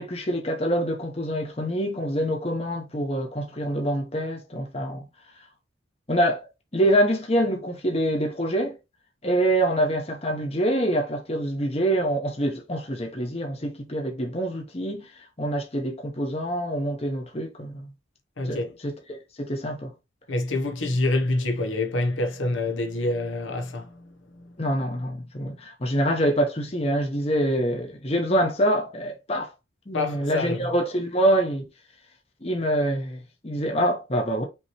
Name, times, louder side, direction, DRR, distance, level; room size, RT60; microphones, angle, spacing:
voice 1, 0.0-5.1 6.1-6.5 6.7-8.8 9.2-15.1 15.4-17.9 18.5-19.9 24.6-29.5 29.9-31.6 32.4-34.5, right 1 dB, 30° left, 0.9 m, -25 dB
voice 2, 18.4-18.8 20.3-24.1 29.9-30.7, left 2 dB, 75° left, 0.9 m, -26 dB
5.6 x 3.1 x 3.0 m
head